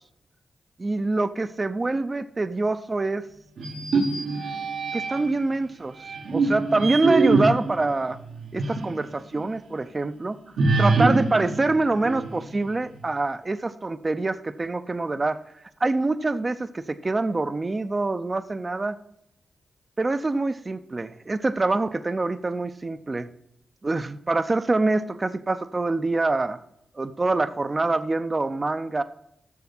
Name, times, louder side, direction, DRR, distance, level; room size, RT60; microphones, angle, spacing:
voice 1, 0.8-3.3 4.9-5.9 6.3-8.2 8.5-10.4 10.8-15.4 15.8-19.0 20.0-23.3 23.8-26.6 27.0-29.0, right 2 dB, 30° right, 11 dB, 0.5 m, -25 dB
sound 1, 3.6-5.4 6.0-9.0 9.4-9.5 10.6-12.6, right 3 dB, 85° right, 1.3 m, -24 dB
7.3 x 6.8 x 5.9 m, 0.76 s
cardioid pair, 70°, 0 cm